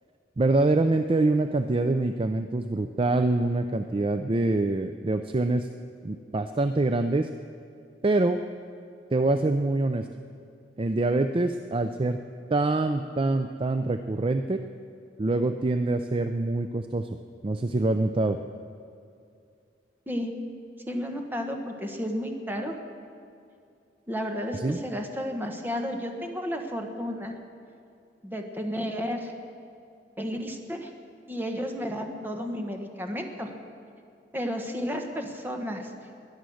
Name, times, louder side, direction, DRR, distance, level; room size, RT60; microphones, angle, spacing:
voice 1, 0.4-5.7 6.0-7.3 8.0-8.4 9.1-10.1 10.8-12.2 12.5-14.6 15.2-17.2 17.4-18.4 24.6-24.8, right 2 dB, 30° right, 8 dB, 0.5 m, -25 dB
voice 2, 20.9-22.7 24.1-27.4 28.2-29.3 30.2-30.9 31.3-33.5 34.3-35.9, equal, 10° right, 3 dB, 1.4 m, -32 dB
21.0 x 10.5 x 6.4 m, 2.5 s
head